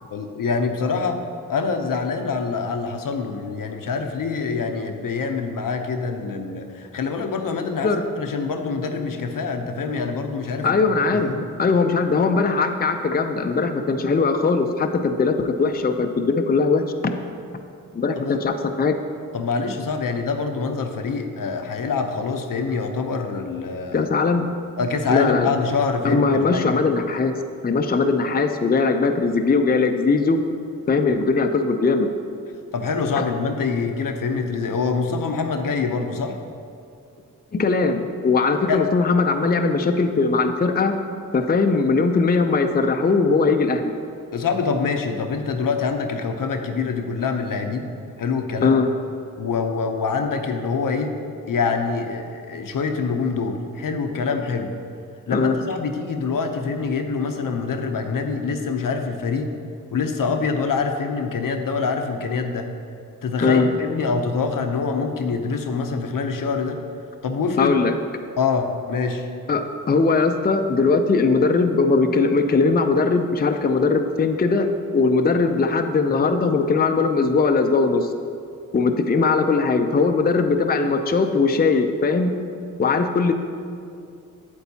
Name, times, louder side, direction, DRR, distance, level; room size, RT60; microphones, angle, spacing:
voice 1, 0.1-1.2 1.5-10.8 11.1-11.5 18.1-18.4 19.3-24.1 24.8-26.8 32.7-36.3 38.7-38.8 44.3-47.9 48.2-48.8 49.4-51.1 51.5-54.7 55.3-59.5 59.9-62.7 63.2-66.8 67.2-67.8 68.4-69.3, left 4 dB, 65° left, 5 dB, 0.7 m, -25 dB
voice 2, 10.6-11.3 11.6-17.1 17.9-18.9 23.9-24.5 25.1-25.5 26.0-27.3 27.6-30.4 30.9-32.1 33.2-33.3 37.5-40.9 41.3-43.9 48.6-48.9 55.3-55.6 63.4-63.7 67.6-67.9 69.5-74.7 74.9-78.1 78.7-82.3 82.8-83.3, left 4 dB, 25° left, 6 dB, 0.5 m, -20 dB
8.1 x 7.8 x 2.8 m, 2.4 s
cardioid pair, 40°, 35 cm